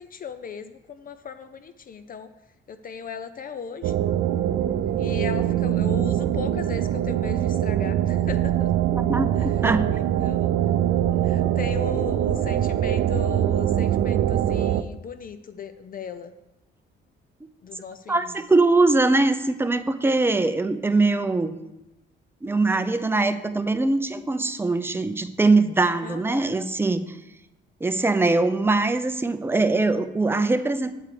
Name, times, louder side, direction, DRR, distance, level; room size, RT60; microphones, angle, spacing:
voice 1, 0.0-2.3 2.7-3.9 5.0-8.7 9.4-9.5 9.9-10.5 11.2-16.3 17.6-18.4 26.0-26.5, left 6 dB, 45° left, 11 dB, 0.5 m, -37 dB
sound 1, 3.8-14.8, right 11 dB, 80° right, 0.4 m, -23 dB
voice 2, 8.9-9.8 18.1-21.6 22.4-27.2 27.8-30.9, right 3 dB, 10° right, 9 dB, 0.6 m, -22 dB
8.4 x 4.6 x 6.7 m, 0.96 s
cardioid pair, 90°, 20 cm